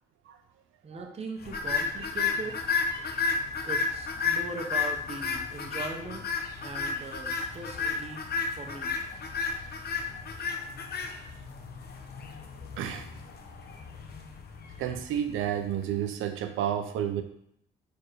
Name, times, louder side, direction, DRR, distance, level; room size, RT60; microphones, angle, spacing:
voice 1, 0.8-2.6 3.6-6.2 6.6-8.3 8.5-8.9, right 3 dB, 30° right, 1 dB, 1.1 m, -40 dB
sound 1, 1.5-15.8, left 5 dB, 55° left, 0.9 m, -32 dB
voice 2, 12.8-13.1 14.8-17.2, right 10 dB, 85° right, 8 dB, 0.7 m, -31 dB
4.6 x 4.6 x 4.7 m, 0.72 s
cardioid pair, 90°, 20 cm